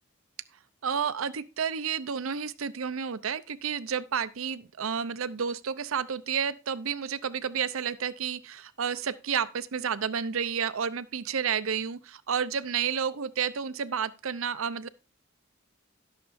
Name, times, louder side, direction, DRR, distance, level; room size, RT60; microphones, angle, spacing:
voice 1, 0.8-14.9, right 7 dB, 85° right, 0.6 m, -31 dB
18.0 x 6.7 x 2.6 m
head